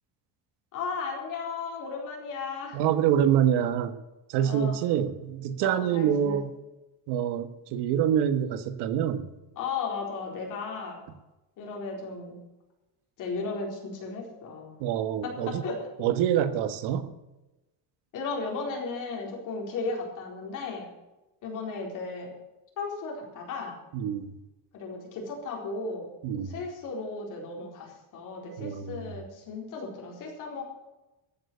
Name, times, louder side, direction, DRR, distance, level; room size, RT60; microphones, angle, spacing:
voice 1, 0.7-2.8 4.4-4.8 5.6-6.4 9.6-11.0 11.6-12.4 13.2-14.7 15.2-16.1 18.1-20.9 21.4-22.3 22.8-23.7 24.7-26.1 26.4-30.6, left 4 dB, 50° left, 0 dB, 4.3 m, -35 dB
voice 2, 2.7-3.9 4.3-6.5 7.1-9.2 14.8-15.6 16.0-17.1 23.9-24.3 26.2-26.6 28.6-29.1, right 9 dB, 85° right, 10 dB, 1.6 m, -26 dB
14.0 x 9.6 x 6.8 m, 1.0 s
cardioid pair, 180°, 39 cm